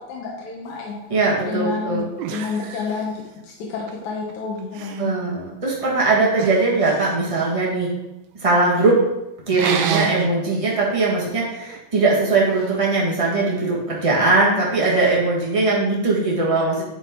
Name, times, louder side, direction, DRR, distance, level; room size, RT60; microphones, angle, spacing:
voice 1, 0.1-1.0 1.4-3.1 3.4-5.1, left 5 dB, 85° left, -2 dB, 2.3 m, -29 dB
voice 2, 1.1-2.0 5.0-7.9 8.4-9.0 9.5-16.8, right 3 dB, 25° right, -5 dB, 0.6 m, -20 dB
sound 1, 1.5-1.6 2.2-3.5 3.9-4.3 4.6-5.1 6.4-7.6 9.5-10.3 10.8-11.0 11.3-12.8 14.8-15.2, right 8 dB, 75° right, 1.7 m, -30 dB
10.5 x 3.8 x 3.6 m, 0.92 s
omnidirectional pair, 3.4 m